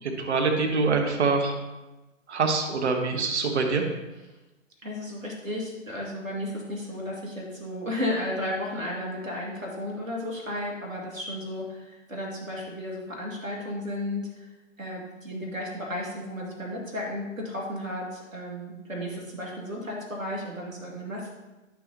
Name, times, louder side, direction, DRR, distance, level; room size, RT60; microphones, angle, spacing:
voice 1, 0.0-1.6 2.3-3.8, right 4 dB, 60° right, 3 dB, 1.5 m, -25 dB
voice 2, 4.8-14.5 14.8-21.3, left 1 dB, 90° right, -3 dB, 2.5 m, -33 dB
9.5 x 6.1 x 2.9 m, 1.1 s
figure-of-eight pair, 125°, 39 cm